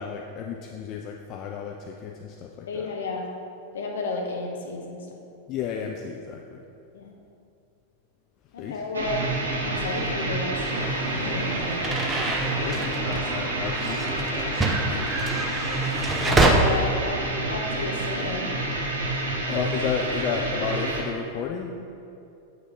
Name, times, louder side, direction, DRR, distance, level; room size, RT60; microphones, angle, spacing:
voice 1, 0.0-2.9 5.5-6.6 8.6-9.0 12.6-15.2 16.5-16.8 19.2-21.7, left 7 dB, 35° left, 2 dB, 0.4 m, -33 dB
voice 2, 2.7-3.3 3.7-5.0 6.9-7.1 8.5-9.3 9.6-10.7 11.1-12.0 12.6-13.3 14.9-15.1 16.2-17.2 17.5-18.5, left 3 dB, 65° left, 0 dB, 1.0 m, -32 dB
sound 1, 8.9-21.0, right 2 dB, 70° right, 1.2 m, -28 dB
sound 2, 10.7-16.5, right 2 dB, 15° right, 0.6 m, -27 dB
7.5 x 5.2 x 3.6 m, 2.6 s
figure-of-eight pair, 90°, 0 cm